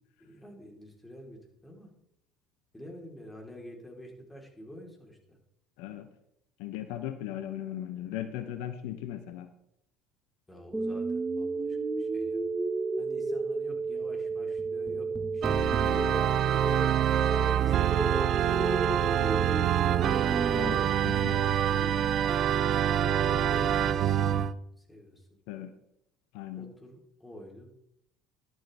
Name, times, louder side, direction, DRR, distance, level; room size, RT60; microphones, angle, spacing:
voice 1, 0.2-1.9 2.7-5.4 10.5-12.5 13.0-17.0 17.5-19.9 20.6-22.5 22.9-24.1 24.8-25.3 26.5-27.7, equal, 10° left, 0 dB, 3.8 m, -47 dB
voice 2, 5.8-6.1 6.6-9.5 20.5-20.7 21.2-21.4 25.5-25.7 26.3-26.7, left 11 dB, 70° left, 10 dB, 0.8 m, -37 dB
sound 1, 10.7-20.7, right 3 dB, 15° right, 1.5 m, -32 dB
Organ, 15.4-24.5, right 10 dB, 50° right, 0.5 m, -26 dB
12.0 x 11.5 x 3.4 m, 0.78 s
hypercardioid pair, 65°, 0 cm